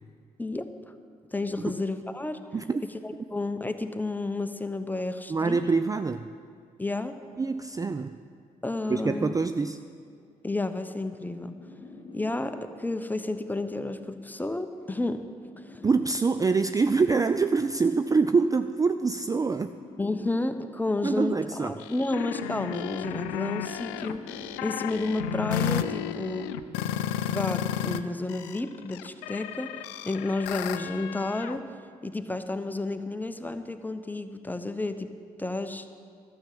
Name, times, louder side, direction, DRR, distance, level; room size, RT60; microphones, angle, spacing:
voice 1, 0.4-0.7 1.3-2.4 3.0-5.6 6.8-7.2 8.6-9.3 10.4-11.6 12.1-15.3 15.6-15.8 20.0-26.5 27.3-31.7 32.0-35.1 35.4-35.8, left 2 dB, 10° left, 8 dB, 0.9 m, -31 dB
voice 2, 5.3-6.3 7.4-8.2 8.9-9.8 15.8-19.7 21.0-21.8, right 4 dB, 20° right, 10 dB, 0.4 m, -25 dB
sound 1, 10.0-13.1 14.1-17.1 18.1-21.1 22.1-25.1 26.1-26.5, left 3 dB, 25° left, 2.5 m, -49 dB
sound 2, 21.8-28.0 28.3-31.6, left 10 dB, 80° left, 0.4 m, -33 dB
12.5 x 7.1 x 7.7 m, 2.1 s
hypercardioid pair, 45°, 17 cm